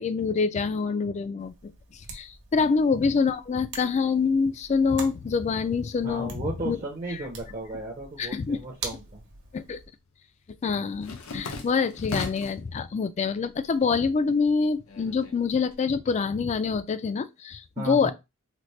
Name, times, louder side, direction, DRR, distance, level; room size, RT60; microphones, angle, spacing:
voice 1, 0.0-1.5 1.9-6.3 6.7-6.8 8.2-8.6 9.5-9.8 10.6-18.1, left 5 dB, 35° left, 0.3 m, -26 dB
sound 1, 1.4-9.9, right 4 dB, 60° right, 0.9 m, -45 dB
voice 2, 6.0-9.2 17.8-18.1, right 2 dB, 40° right, 0.6 m, -35 dB
sound 2, 8.8-9.6 9.9-12.7 13.1-13.8 14.1-15.7, left 4 dB, 90° left, 0.8 m, -38 dB
4.1 x 2.0 x 3.1 m
head